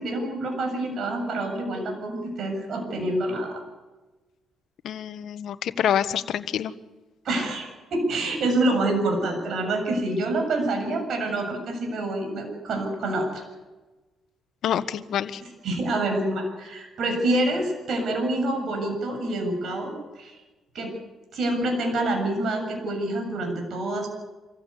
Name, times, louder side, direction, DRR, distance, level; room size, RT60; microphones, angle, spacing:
voice 1, 0.0-3.6 7.2-13.4 15.6-20.3 20.7-20.9 21.3-24.1, right 2 dB, 65° right, 4 dB, 7.4 m, -27 dB
voice 2, 4.8-6.7 14.6-15.4, left 9 dB, 70° left, 11 dB, 1.2 m, -26 dB
25.5 x 15.5 x 8.4 m, 1.2 s
cardioid pair, 90°, 0 cm